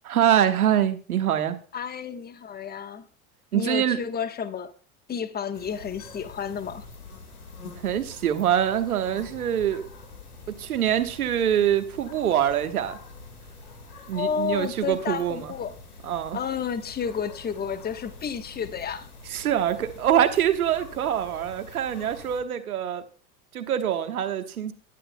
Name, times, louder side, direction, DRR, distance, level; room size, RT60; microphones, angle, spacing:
voice 1, 0.0-1.6 3.5-4.0 7.8-9.9 10.6-13.0 14.1-15.5 16.0-16.4 19.3-23.0 23.5-24.7, right 10 dB, 75° right, 9 dB, 1.3 m, -24 dB
voice 2, 1.7-3.0 3.5-4.7 5.1-6.8 14.1-15.7 16.3-19.1, left 7 dB, 20° left, 11 dB, 1.1 m, -31 dB
sound 1, 5.5-22.4, left 3 dB, 85° left, 1.9 m, -45 dB
21.0 x 11.0 x 2.2 m, 0.39 s
figure-of-eight pair, 75°, 44 cm